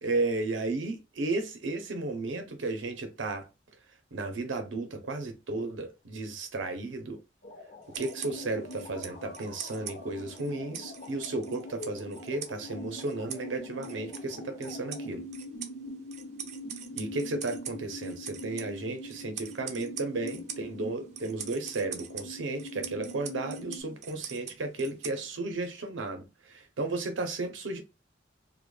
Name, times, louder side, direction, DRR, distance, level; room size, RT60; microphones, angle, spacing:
voice 1, 0.0-3.5 4.1-7.2 7.9-15.3 16.9-27.8, right 2 dB, 90° right, 0.5 m, -34 dB
sound 1, 7.4-15.1, left 3 dB, 45° left, 0.4 m, -48 dB
sound 2, 7.8-25.6, right 8 dB, 40° right, 0.3 m, -45 dB
sound 3, 8.0-23.8, left 1 dB, 70° left, 0.7 m, -43 dB
2.2 x 2.1 x 3.0 m
head